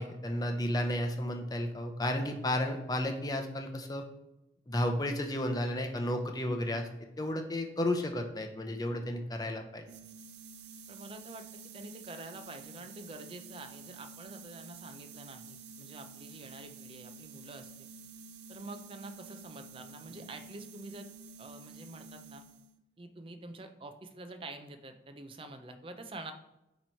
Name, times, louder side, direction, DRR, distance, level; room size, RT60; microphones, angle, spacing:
voice 1, 0.0-4.0 4.7-6.9 7.2-9.8, left 1 dB, 20° left, 4 dB, 0.7 m, -32 dB
sound 1, 9.9-22.8, right 5 dB, 75° right, 0.6 m, -50 dB
voice 2, 10.9-11.5 11.7-17.7 18.5-21.1 21.4-22.4 23.0-26.3, right 2 dB, 30° right, 7 dB, 0.5 m, -47 dB
9.3 x 3.1 x 4.5 m, 0.91 s
head